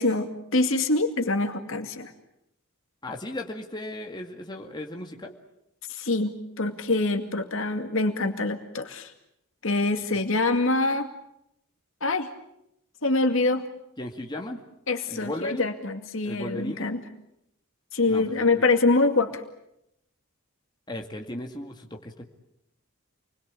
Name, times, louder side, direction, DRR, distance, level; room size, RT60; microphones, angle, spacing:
voice 1, 0.0-2.1 5.9-9.1 9.6-11.1 12.0-12.3 13.0-13.6 14.9-17.0 17.9-19.4, left 2 dB, 65° left, 6 dB, 2.3 m, -25 dB
voice 2, 3.0-5.3 14.0-14.6 15.1-15.7 16.2-16.9 18.1-18.6 20.9-22.2, left 1 dB, 20° left, 2 dB, 2.1 m, -36 dB
28.5 x 21.5 x 8.5 m, 0.81 s
head